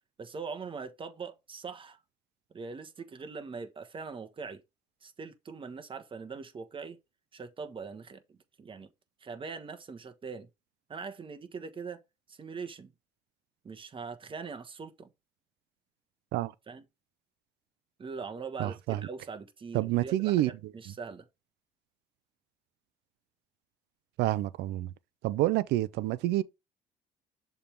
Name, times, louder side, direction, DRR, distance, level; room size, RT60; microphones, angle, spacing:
voice 1, 0.2-2.0 2.5-4.6 5.0-7.0 7.3-8.9 9.2-10.5 10.9-12.0 12.3-12.9 13.6-15.1 16.7-16.8 18.0-21.3, right 5 dB, 30° right, 1.3 m, -42 dB
voice 2, 18.6-19.0 19.7-20.5 24.2-24.9 25.2-26.4, right 16 dB, 85° right, 0.5 m, -28 dB
6.8 x 3.5 x 4.5 m
cardioid pair, 110°, 17 cm